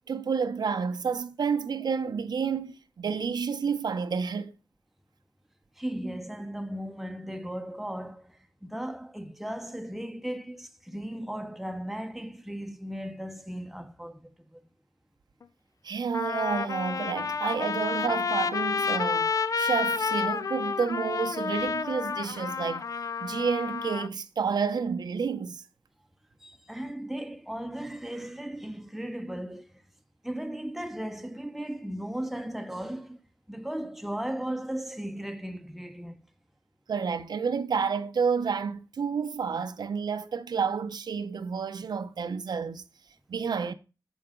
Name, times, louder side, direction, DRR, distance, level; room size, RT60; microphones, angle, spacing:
voice 1, 0.1-4.5 15.8-19.3 19.6-22.8 23.2-25.6 36.9-42.8 43.3-43.7, right 6 dB, 80° right, 0.8 m, -30 dB
voice 2, 5.8-14.6 26.4-29.8 30.2-33.2 33.5-36.2, right 1 dB, 5° right, 0.8 m, -36 dB
Trumpet, 15.4-15.5 16.1-24.1, left 5 dB, 55° left, 0.5 m, -30 dB
9.2 x 6.1 x 3.8 m
wide cardioid pair, 145°, 7 cm